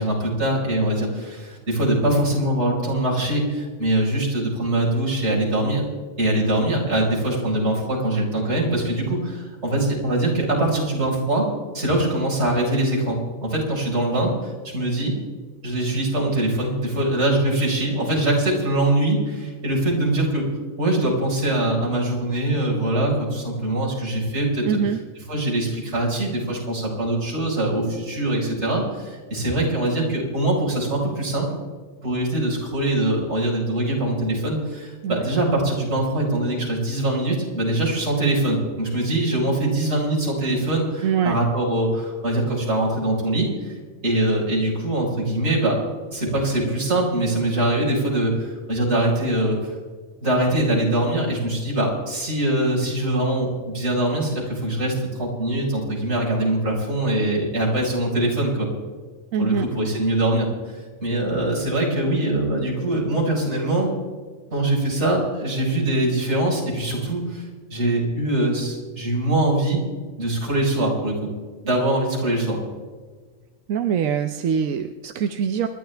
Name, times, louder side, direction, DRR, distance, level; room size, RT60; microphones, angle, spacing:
voice 1, 0.0-5.8 6.2-11.5 11.7-15.1 15.6-20.4 20.8-24.8 25.3-31.5 32.0-43.7 44.0-45.8 46.1-49.6 50.2-58.7 59.4-60.5 61.0-63.9 64.5-67.4 67.7-69.8 70.2-71.3 71.6-72.6, right 1 dB, 55° right, -4 dB, 5.1 m, -23 dB
voice 2, 24.7-25.0 35.0-35.3 41.0-41.4 59.3-59.7 73.7-75.7, right 7 dB, 90° right, 7 dB, 1.1 m, -23 dB
28.0 x 11.5 x 3.4 m, 1.5 s
omnidirectional pair, 1.4 m